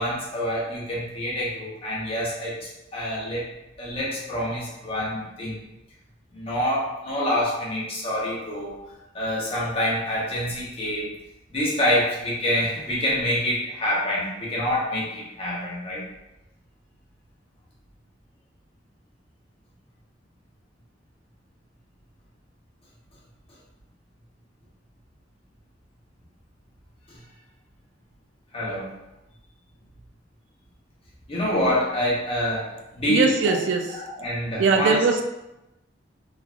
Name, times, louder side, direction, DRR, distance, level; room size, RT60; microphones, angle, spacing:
voice 1, 0.0-2.5 2.9-3.4 3.8-5.5 6.3-8.8 9.1-11.1 11.5-16.0 28.5-28.9 31.3-33.5 34.0-35.0, equal, 30° left, -6 dB, 0.8 m, -26 dB
voice 2, 33.1-33.9 34.6-35.2, right 4 dB, 85° right, 5 dB, 0.3 m, -20 dB
3.2 x 2.3 x 2.4 m, 0.94 s
head